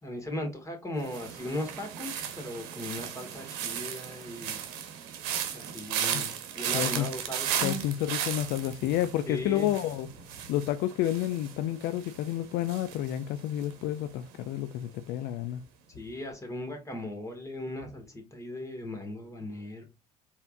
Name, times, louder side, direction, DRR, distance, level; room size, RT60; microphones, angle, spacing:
voice 1, 0.0-4.6 5.5-7.8 9.3-9.7 15.9-19.8, left 1 dB, 15° left, 2.1 m, -38 dB
sound 1, 1.0-14.1 14.3-14.8, right 9 dB, 70° right, 0.9 m, -36 dB
voice 2, 6.7-7.1 7.6-10.1 10.5-15.6, left 13 dB, 65° left, 0.4 m, -30 dB
4.4 x 3.5 x 2.6 m
hypercardioid pair, 60°, 18 cm